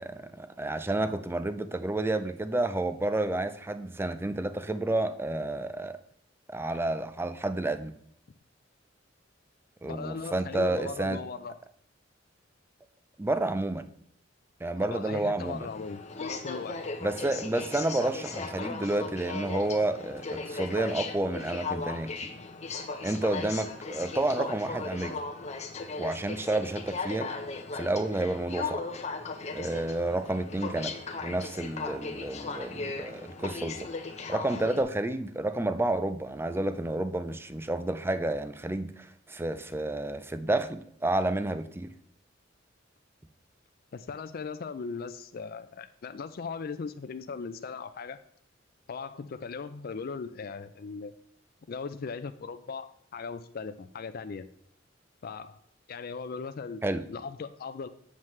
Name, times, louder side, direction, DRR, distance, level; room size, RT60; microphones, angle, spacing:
voice 1, 0.0-6.0 6.5-7.9 9.8-11.2 13.2-13.9 14.6-15.7 17.0-22.3 23.0-25.2 26.0-27.3 27.7-28.8 29.5-33.9 34.3-41.9 56.8-57.0, right 2 dB, 10° right, 11 dB, 0.4 m, -30 dB
voice 2, 9.9-11.5 14.8-16.8 43.9-48.2 48.9-51.1 51.7-54.5 55.2-55.6 55.9-56.8 57.1-57.9, left 5 dB, 50° left, 9 dB, 0.4 m, -38 dB
Aircraft, 15.4-34.8, left 4 dB, 35° left, 0.8 m, -37 dB
7.4 x 7.3 x 3.2 m, 0.69 s
head